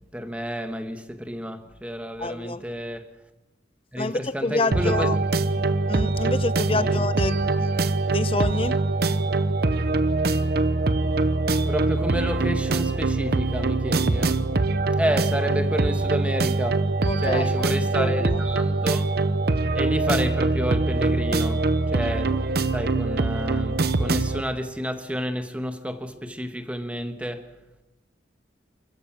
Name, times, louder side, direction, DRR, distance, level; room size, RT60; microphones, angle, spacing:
voice 1, 0.1-3.1 3.9-5.1 6.7-7.1 11.7-14.5 14.9-16.9 17.2-19.0 19.7-22.4 22.7-27.5, equal, 5° right, 1.5 m, -30 dB
voice 2, 2.2-2.6 4.0-5.2 5.9-7.7 8.1-8.8 17.1-18.4, left 3 dB, 30° left, 0.9 m, -28 dB
sound 1, 4.7-24.4, right 3 dB, 60° right, 0.8 m, -23 dB
29.0 x 15.0 x 7.4 m
head